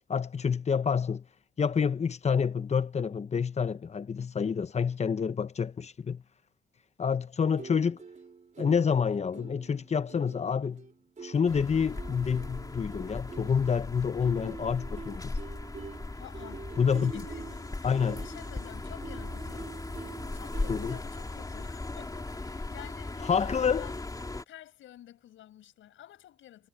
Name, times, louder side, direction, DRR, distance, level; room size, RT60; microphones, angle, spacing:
voice 1, 0.1-1.2 1.6-6.2 7.0-8.0 8.6-10.8 11.2-15.4 16.8-17.2 17.8-18.2 20.7-21.0 23.2-23.9, left 6 dB, 35° left, 1.0 m, -28 dB
sound 1, 7.4-21.0, right 5 dB, 40° right, 3.5 m, -47 dB
sound 2, 11.5-24.4, left 2 dB, 20° left, 3.2 m, -38 dB
voice 2, 16.2-16.7 17.0-19.7 20.3-26.7, left 12 dB, 80° left, 6.4 m, -51 dB
cardioid pair, 90°, 20 cm